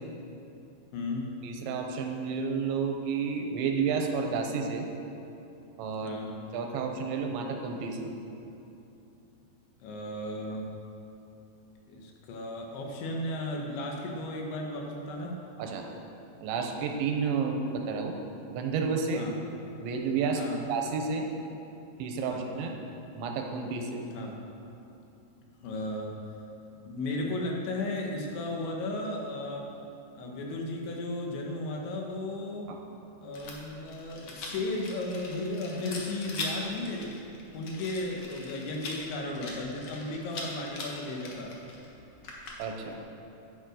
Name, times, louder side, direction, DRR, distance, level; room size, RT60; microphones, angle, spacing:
voice 1, 0.9-1.3 6.0-6.3 9.8-10.7 11.9-15.4 19.2-19.3 20.3-20.6 22.3-22.8 24.1-24.4 25.6-26.1 26.8-29.7 30.2-32.8 33.2-37.2 37.5-41.5, left 2 dB, 85° left, 0 dB, 3.8 m, -35 dB
voice 2, 1.4-4.9 5.8-6.2 6.5-8.1 15.6-15.8 16.4-18.2 18.5-19.3 19.8-20.4 20.7-21.3 22.0-22.7 23.1-24.0 32.7-32.8 42.6-43.0, right 5 dB, 85° right, 3 dB, 3.4 m, -31 dB
Rattle, 33.3-42.9, left 2 dB, 65° left, 1.6 m, -41 dB
10.0 x 9.7 x 6.5 m, 2.8 s
omnidirectional pair, 5.1 m